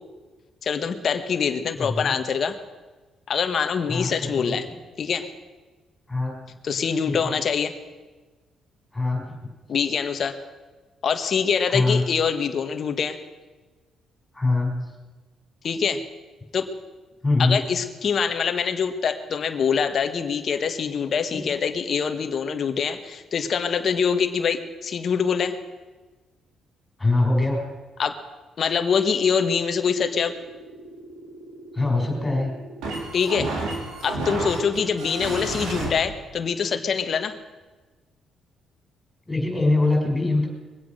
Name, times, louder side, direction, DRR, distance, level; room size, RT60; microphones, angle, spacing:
voice 1, 0.6-2.6 3.3-4.6 5.0-5.3 6.6-7.7 9.7-10.4 11.0-13.2 15.6-16.0 16.5-16.7 17.4-25.6 28.0-28.2 28.6-30.3 33.1-33.5 34.0-37.3, left 6 dB, 55° left, 8 dB, 1.4 m, -24 dB
voice 2, 1.8-2.1 3.9-4.8 6.1-6.4 7.1-7.4 8.9-9.5 11.7-12.1 14.3-14.9 17.2-17.6 21.3-21.5 27.0-27.7 31.7-32.5 39.3-40.5, left 2 dB, 15° left, 1 dB, 5.7 m, -23 dB
sound 1, 30.0-35.9, right 2 dB, 85° right, 3.7 m, -32 dB
22.5 x 8.3 x 6.5 m, 1.3 s
cardioid pair, 90°, 0 cm